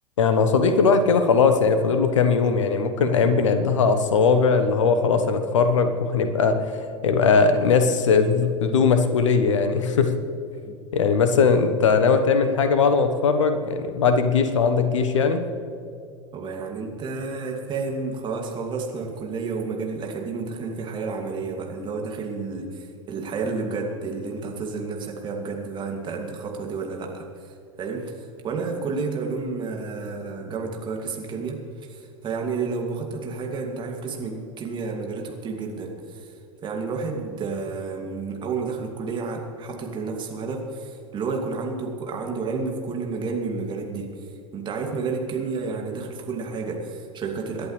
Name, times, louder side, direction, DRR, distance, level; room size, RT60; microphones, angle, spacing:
voice 1, 0.2-10.1 10.9-15.4, left 5 dB, 65° left, 8 dB, 1.3 m, -20 dB
voice 2, 16.3-36.3 36.6-47.7, right 4 dB, 30° right, 1 dB, 2.5 m, -31 dB
27.5 x 11.0 x 3.3 m, 2.5 s
figure-of-eight pair, 85°, 17 cm